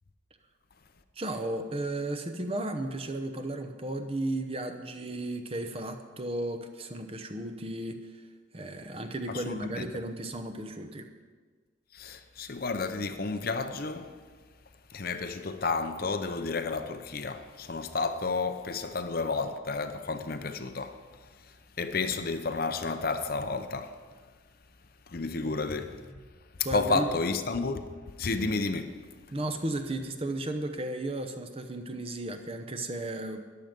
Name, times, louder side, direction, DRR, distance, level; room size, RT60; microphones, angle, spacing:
voice 1, 1.2-8.3 8.5-11.1 25.4-25.5 25.9-26.2 26.6-27.1 29.3-33.4, right 1 dB, 30° right, 0.8 m, -34 dB
voice 2, 9.5-9.9 11.9-14.1 14.9-21.0 21.8-23.9 25.1-26.0 26.7-27.9 28.2-29.0, left 3 dB, 45° left, 0.7 m, -31 dB
14.0 x 10.5 x 5.2 m
head